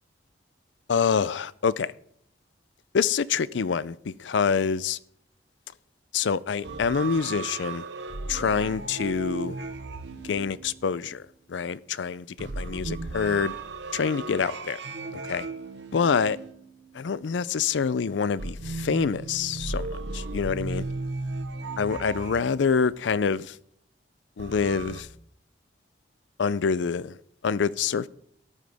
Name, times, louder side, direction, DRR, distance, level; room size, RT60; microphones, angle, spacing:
voice 1, 0.9-1.9 2.9-5.0 6.1-7.8 8.3-9.6 10.2-11.2 11.5-13.5 13.9-14.8 15.1-15.5 15.9-16.4 16.9-20.8 21.8-23.6 24.4-25.1 26.4-27.2 27.4-28.1, left 6 dB, 80° left, 0.5 m, -26 dB
sound 1, 6.6-11.2 12.4-17.2 18.4-23.0 24.4-25.0, right 3 dB, 75° right, 1.0 m, -36 dB
13.5 x 12.5 x 3.5 m
head